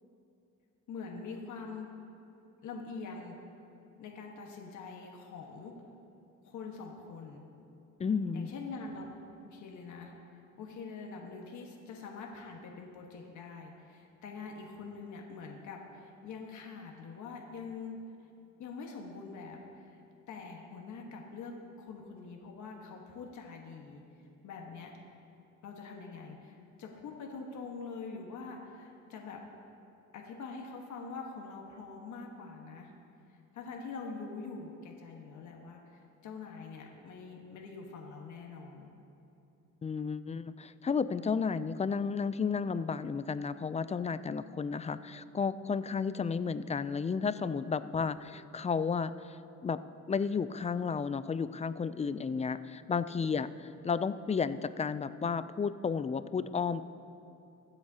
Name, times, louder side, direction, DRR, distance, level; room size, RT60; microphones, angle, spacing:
voice 1, 0.9-1.9 2.6-3.4 4.0-5.7 6.4-7.5 8.3-9.1 9.4-10.1 10.6-18.0 18.6-20.0 20.3-24.0 24.4-24.9 25.6-29.4 30.1-32.9 33.5-38.9 53.1-53.3, left 4 dB, 75° left, 0 dB, 1.4 m, -44 dB
voice 2, 8.0-8.5 39.8-49.8 50.1-56.8, left 5 dB, 25° left, 14 dB, 0.4 m, -32 dB
22.5 x 8.0 x 2.8 m, 2.9 s
cardioid pair, 90°, 30 cm